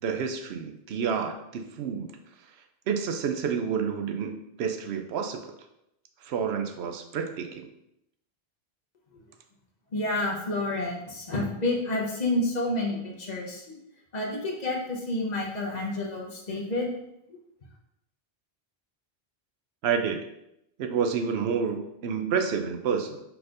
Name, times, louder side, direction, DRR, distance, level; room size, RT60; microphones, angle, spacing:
voice 1, 0.0-2.1 2.9-5.5 6.2-7.7 19.8-20.2 20.8-23.2, right 6 dB, 80° right, 5 dB, 0.8 m, -29 dB
voice 2, 9.9-13.8 14.1-16.9, left 2 dB, 45° left, -2 dB, 1.0 m, -29 dB
4.4 x 4.1 x 2.5 m, 0.82 s
omnidirectional pair, 1.1 m